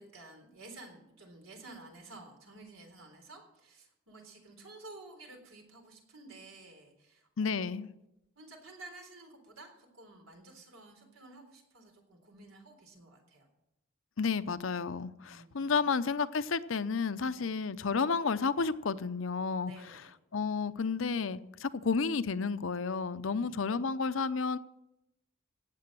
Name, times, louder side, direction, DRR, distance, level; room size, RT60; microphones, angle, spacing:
voice 1, 0.0-7.8 8.4-13.5 15.2-15.9 17.3-17.5 19.6-20.1 23.3-23.5, right 2 dB, 85° right, 3 dB, 3.9 m, -52 dB
voice 2, 7.4-7.9 14.2-19.7 20.3-24.6, left 5 dB, 70° left, 13 dB, 0.7 m, -31 dB
17.5 x 7.8 x 7.6 m, 0.86 s
head